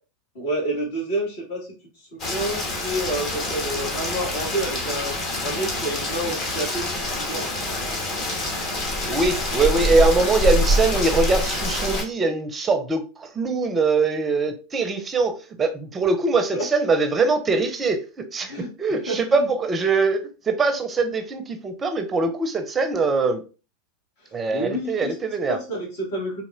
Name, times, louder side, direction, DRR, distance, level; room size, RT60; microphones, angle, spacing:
voice 1, 0.3-1.7 2.0-5.2 5.4-7.5 16.5-16.6 18.4-19.5 24.5-25.1 25.5-26.4, right 1 dB, 65° left, -3 dB, 2.0 m, -29 dB
Rain, 2.2-12.0, left 1 dB, 40° left, 1.3 m, -26 dB
voice 2, 9.1-15.3 15.6-23.4 24.3-25.6, right 3 dB, 25° right, 8 dB, 0.5 m, -22 dB
4.1 x 2.9 x 2.5 m, 0.34 s
hypercardioid pair, 95°, 0 cm